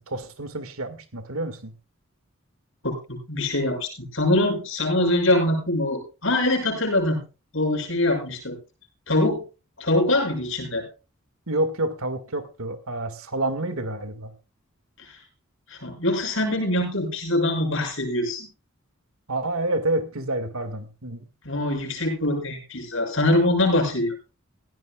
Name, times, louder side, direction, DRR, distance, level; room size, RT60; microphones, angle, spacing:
voice 1, 0.0-1.7 11.5-14.3 19.3-21.3, right 1 dB, 75° right, 9 dB, 2.0 m, -28 dB
voice 2, 2.8-7.2 7.5-8.6 9.1-9.4 9.8-10.9 15.0-15.2 15.7-18.5 21.4-24.1, left 1 dB, 60° left, 1 dB, 7.1 m, -23 dB
17.0 x 16.5 x 2.4 m, 0.31 s
head